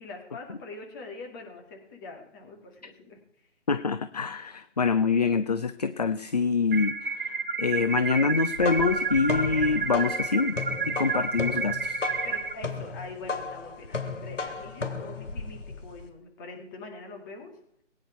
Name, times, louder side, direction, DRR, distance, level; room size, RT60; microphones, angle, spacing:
voice 1, 0.0-3.2 12.2-17.5, left 3 dB, 15° left, 2 dB, 2.1 m, -43 dB
voice 2, 3.7-10.6 10.9-12.0, left 5 dB, 35° left, 12 dB, 0.5 m, -26 dB
sound 1, 6.7-12.5, right 4 dB, 45° right, 1.2 m, -30 dB
sound 2, 8.3-16.1, left 4 dB, 85° left, 2.7 m, -35 dB
20.0 x 10.0 x 4.6 m, 0.67 s
figure-of-eight pair, 160°, 36 cm